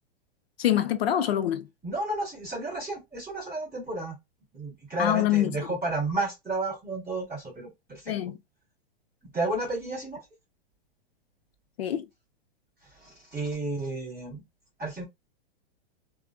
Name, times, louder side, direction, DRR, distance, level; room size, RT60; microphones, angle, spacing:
voice 1, 0.6-1.7 5.0-5.5 8.1-8.4 11.8-12.1, left 11 dB, 80° left, 0.7 m, -25 dB
voice 2, 1.8-4.2 4.5-8.1 9.2-10.2 12.9-14.4 14.8-15.0, right 2 dB, 5° right, 2.0 m, -32 dB
3.7 x 2.4 x 2.2 m
supercardioid pair, 175°, 30 cm